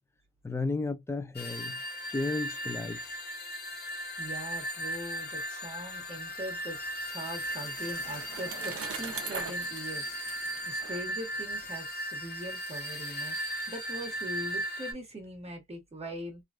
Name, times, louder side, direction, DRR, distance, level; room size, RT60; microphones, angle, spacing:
voice 1, 0.4-1.8 2.1-3.2, left 3 dB, 10° left, 0.4 m, -33 dB
sound 1, 1.3-14.9, equal, 35° left, 1.0 m, -37 dB
voice 2, 4.2-6.8 7.1-10.2 10.6-16.4, right 1 dB, 20° right, 1.5 m, -41 dB
Bicycle, 7.0-11.8, right 6 dB, 50° right, 0.9 m, -42 dB
3.1 x 2.4 x 2.4 m
cardioid pair, 115°, 30 cm